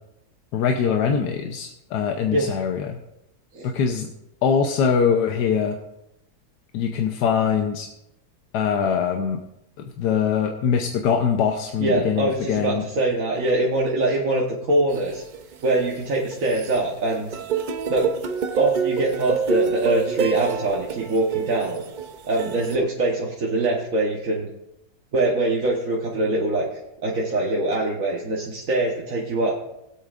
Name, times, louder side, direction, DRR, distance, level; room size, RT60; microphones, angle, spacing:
voice 1, 0.5-3.0 3.6-4.1 4.4-5.8 6.7-7.9 8.5-9.4 9.8-12.8, left 7 dB, 90° left, 4 dB, 1.4 m, -22 dB
voice 2, 11.8-15.2 15.6-17.3 17.9-18.1 18.5-21.8 22.3-24.5 25.1-26.7 27.0-29.6, right 2 dB, 55° right, -3 dB, 1.6 m, -23 dB
sound 1, 14.9-16.8 17.1-22.8, right 6 dB, 85° right, 0.4 m, -27 dB
20.5 x 8.5 x 2.5 m, 0.86 s
omnidirectional pair, 1.7 m